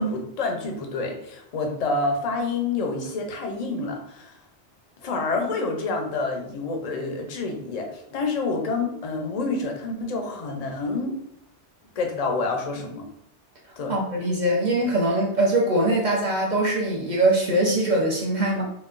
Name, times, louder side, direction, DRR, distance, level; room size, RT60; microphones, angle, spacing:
voice 1, 0.0-4.4 5.0-11.2 12.0-13.1 13.8-14.0, left 3 dB, 50° left, 3 dB, 0.5 m, -28 dB
voice 2, 13.9-18.6, right 1 dB, 50° right, -2 dB, 0.6 m, -22 dB
3.9 x 2.2 x 2.4 m, 0.74 s
omnidirectional pair, 1.2 m